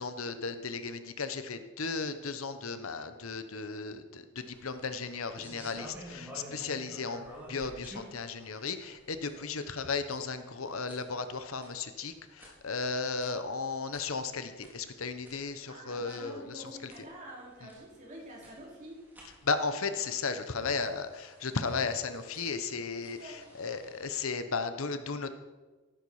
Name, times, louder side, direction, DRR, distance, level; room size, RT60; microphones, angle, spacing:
voice 1, 0.0-7.2 7.5-16.9 17.6-17.7 19.4-25.3, left 4 dB, 80° left, 9 dB, 1.1 m, -35 dB
sound 1, 4.4-24.3, equal, 10° right, 4.2 m, -53 dB
voice 2, 15.7-19.1 23.1-23.4, right 1 dB, 35° right, -4 dB, 4.8 m, -47 dB
14.5 x 13.0 x 5.0 m, 1.2 s
head